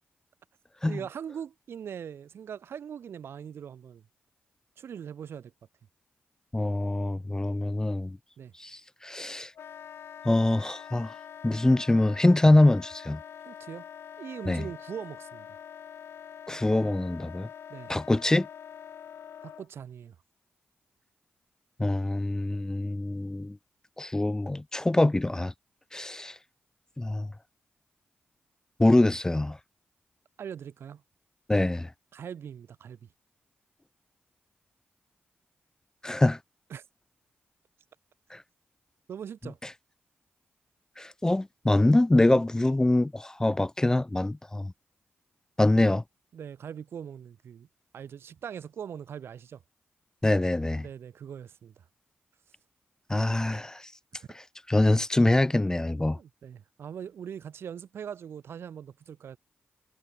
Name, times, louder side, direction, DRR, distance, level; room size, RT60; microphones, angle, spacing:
voice 1, 0.9-4.0 4.8-5.5 8.4-8.5 13.4-13.9 14.2-15.5 17.7-17.9 19.4-20.1 30.4-31.0 32.1-33.1 36.7-36.8 39.1-39.6 45.7-46.0 46.3-47.7 47.9-49.6 50.8-51.8 54.2-54.3 56.1-59.4, right 8 dB, 75° right, 1.4 m, -41 dB
voice 2, 6.5-8.2 8.6-9.5 10.2-11.1 11.4-13.2 14.5-14.7 16.5-17.5 17.9-18.5 21.8-23.6 24.0-25.5 25.9-26.4 27.0-27.3 28.8-29.6 31.5-31.9 36.0-36.4 38.3-38.4 41.0-44.7 45.6-46.0 50.2-50.9 53.1-53.9 54.7-56.2, left 2 dB, 15° left, 0.4 m, -24 dB
Wind instrument woodwind instrument, 9.5-19.7, left 8 dB, 80° left, 2.9 m, -45 dB
cardioid pair, 60°, 4 cm